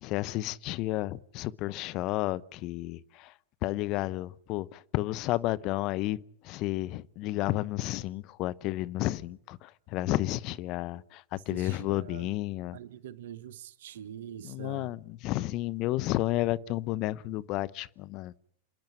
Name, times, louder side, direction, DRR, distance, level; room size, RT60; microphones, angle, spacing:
voice 1, 0.0-3.3 3.6-12.8 14.4-18.3, left 17 dB, 45° left, 0.7 m, -32 dB
voice 2, 11.3-12.3 12.7-14.9, right 10 dB, 70° right, 0.9 m, -44 dB
27.5 x 10.5 x 9.6 m
hypercardioid pair, 100°, 0 cm